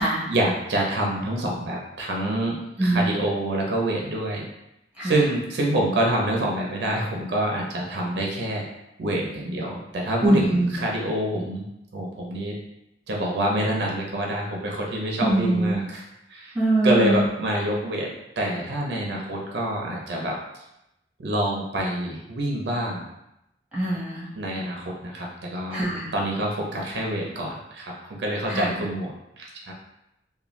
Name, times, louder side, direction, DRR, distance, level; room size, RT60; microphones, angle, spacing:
voice 1, 0.0-2.5 2.8-4.5 5.0-8.6 9.0-11.6 11.9-12.5 13.1-16.0 16.3-16.6 16.8-18.1 18.4-20.3 21.2-23.0 24.4-25.8 26.1-29.7, right 1 dB, 65° right, -1 dB, 0.5 m, -26 dB
voice 2, 2.8-3.1 5.0-5.2 10.2-10.8 15.2-15.8 16.5-17.2 23.7-24.3 25.7-26.1 28.5-28.8, right 1 dB, 5° right, -8 dB, 0.9 m, -23 dB
2.5 x 2.2 x 3.1 m, 0.87 s
head